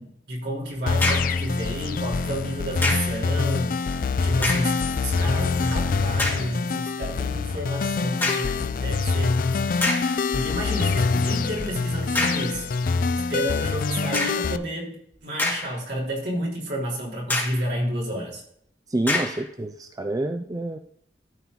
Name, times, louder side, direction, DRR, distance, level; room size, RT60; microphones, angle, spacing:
voice 1, 0.0-9.4 10.3-12.7 13.1-18.4, equal, 70° right, -4 dB, 3.7 m, -30 dB
sound 1, 0.9-14.6, left 4 dB, 50° left, 0.4 m, -25 dB
sound 2, 1.0-1.4 2.8-3.2 4.3-4.8 5.4-5.5 6.2-6.5 8.2-8.6 9.3-9.4 9.8-10.2 12.1-12.5 14.1-14.5 15.1-16.0 16.3-16.4 17.3-17.7 19.1-19.5, left 2 dB, 10° left, 2.5 m, -27 dB
voice 2, 18.9-20.8, right 1 dB, 20° right, 6 dB, 0.4 m, -28 dB
13.0 x 4.5 x 4.0 m, 0.69 s
head